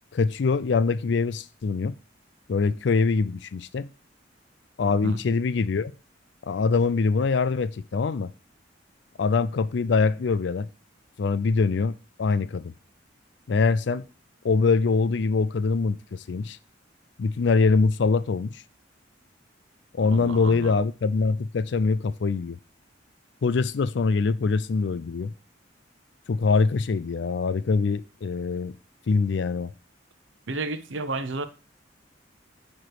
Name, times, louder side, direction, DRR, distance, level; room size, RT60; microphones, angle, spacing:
voice 1, 0.1-1.9 2.5-3.9 4.8-5.9 6.4-8.3 9.2-10.7 11.2-12.7 13.5-14.1 14.4-16.6 17.2-18.6 19.9-22.6 23.4-25.3 26.3-28.8 29.1-29.7, left 4 dB, 65° left, 0.4 m, -24 dB
voice 2, 20.0-20.8 30.5-31.4, right 2 dB, 75° right, 0.7 m, -32 dB
9.0 x 3.2 x 4.7 m
head